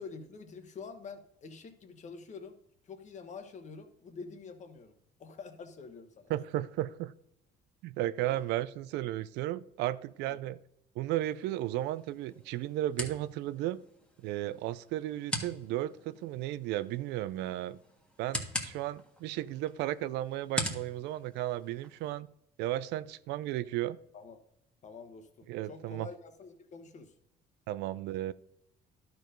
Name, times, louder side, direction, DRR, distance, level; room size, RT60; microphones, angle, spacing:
voice 1, 0.0-2.6 2.8-6.3 8.3-8.4 10.2-10.4 24.1-24.4 24.8-27.1, left 4 dB, 45° left, 1.3 m, -47 dB
voice 2, 6.3-7.1 7.8-10.6 11.0-13.8 14.2-17.8 18.2-22.3 22.6-24.0 25.5-26.1 27.7-28.3, right 14 dB, 90° right, 0.4 m, -34 dB
sound 1, 11.2-22.2, equal, 5° left, 1.5 m, -42 dB
12.0 x 4.6 x 5.2 m
cardioid pair, 110°, 17 cm